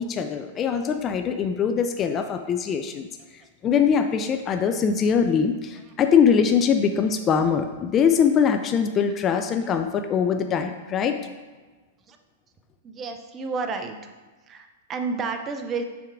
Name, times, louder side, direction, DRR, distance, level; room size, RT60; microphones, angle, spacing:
voice 1, 0.0-3.1 3.6-11.2, left 7 dB, 30° left, 7 dB, 0.4 m, -22 dB
voice 2, 12.8-14.0 14.5-15.8, right 4 dB, 25° right, 6 dB, 0.6 m, -30 dB
5.9 x 3.6 x 4.7 m, 1.3 s
hypercardioid pair, 120°, 0 cm